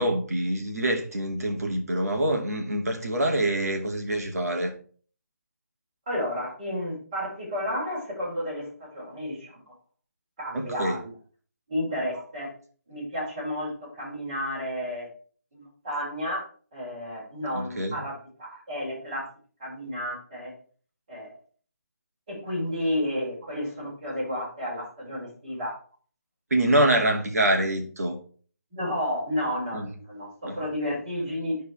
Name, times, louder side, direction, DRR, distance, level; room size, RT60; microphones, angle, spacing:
voice 1, 0.0-4.7 10.5-11.0 17.5-18.0 26.5-28.2 29.7-29.9 30.4-30.6, right 1 dB, 70° right, 2.5 m, -25 dB
voice 2, 6.1-9.6 10.4-11.1 11.7-12.5 12.9-15.1 15.5-16.4 16.7-19.3 19.6-20.5 21.1-21.3 22.3-25.7 28.7-31.6, equal, 25° right, 4.8 m, -31 dB
11.0 x 4.6 x 4.5 m
hypercardioid pair, 175°, 9 cm